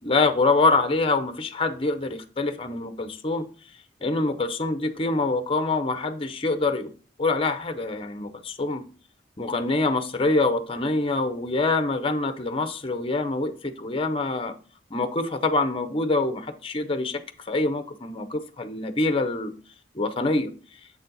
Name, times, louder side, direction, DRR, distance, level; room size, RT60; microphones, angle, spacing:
voice 1, 0.0-3.4 4.0-6.9 7.2-8.8 9.4-14.5 14.9-17.2 17.5-19.5 19.9-20.5, left 3 dB, 30° left, 0.7 m, -25 dB
7.5 x 4.3 x 3.9 m
head